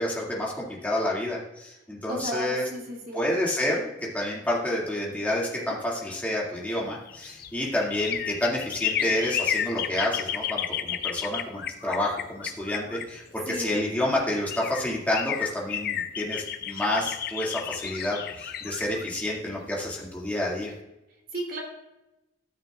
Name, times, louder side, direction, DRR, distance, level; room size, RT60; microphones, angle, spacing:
voice 1, 0.0-2.7 3.1-20.7, left 1 dB, 10° left, -4 dB, 2.1 m, -29 dB
voice 2, 2.1-3.3 13.5-13.8 21.3-21.6, equal, 50° right, 0 dB, 2.5 m, -34 dB
sound 1, 6.8-13.6 14.2-14.3 14.5-20.3 20.6-20.7, left 9 dB, 55° left, 0.6 m, -32 dB
13.5 x 6.6 x 2.3 m, 0.93 s
head